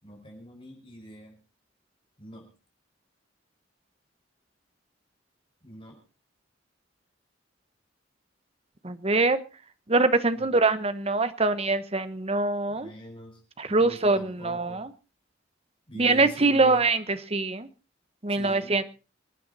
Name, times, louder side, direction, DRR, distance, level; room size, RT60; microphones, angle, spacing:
voice 1, 0.0-1.4 2.2-2.5 5.6-6.0 10.3-10.6 12.7-13.4 13.7-14.9 15.9-16.9 18.3-18.8, equal, 30° left, 1 dB, 5.2 m, -44 dB
voice 2, 8.8-9.4 9.9-12.9 13.6-14.9 16.0-17.7 18.2-18.8, right 3 dB, 30° right, 11 dB, 1.1 m, -24 dB
27.0 x 9.4 x 4.1 m, 0.34 s
head